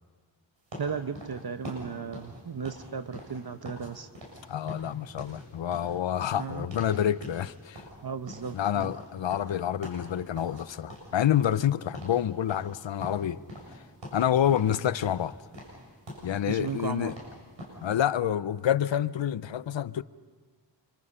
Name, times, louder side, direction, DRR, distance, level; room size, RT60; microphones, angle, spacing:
sound 1, 0.7-3.9 4.1-4.4 4.7-7.0 7.2-7.5 7.7-10.6 10.9-11.7 11.9-12.2 12.5-13.8 14.0-14.8 15.0-17.8, equal, 85° right, 6.9 m, -43 dB
voice 1, 0.8-4.1 6.4-6.7 8.0-8.9 16.5-17.1, right 6 dB, 55° right, 0.9 m, -35 dB
voice 2, 4.5-7.8 8.5-13.4 14.1-15.3 16.2-17.2 17.8-20.0, left 10 dB, 85° left, 0.6 m, -28 dB
26.0 x 24.5 x 5.6 m
wide cardioid pair, 55°, 44 cm